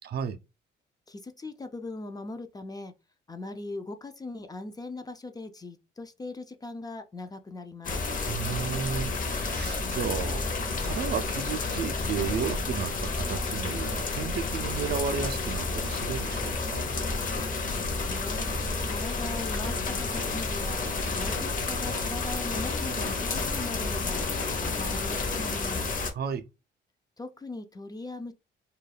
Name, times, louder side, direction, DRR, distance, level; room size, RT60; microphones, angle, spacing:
voice 1, 0.0-0.4 8.3-10.4 10.8-16.8 26.1-26.5, right 7 dB, 55° right, 0.4 m, -33 dB
voice 2, 1.1-2.9 3.3-8.0 17.7-25.9 27.2-28.3, left 2 dB, 20° left, 0.3 m, -40 dB
sound 1, 7.8-26.1, left 3 dB, 45° left, 0.7 m, -30 dB
sound 2, 10.8-16.3 17.6-25.0, left 3 dB, 80° left, 0.5 m, -47 dB
2.3 x 2.2 x 3.2 m
cardioid pair, 90°, 20 cm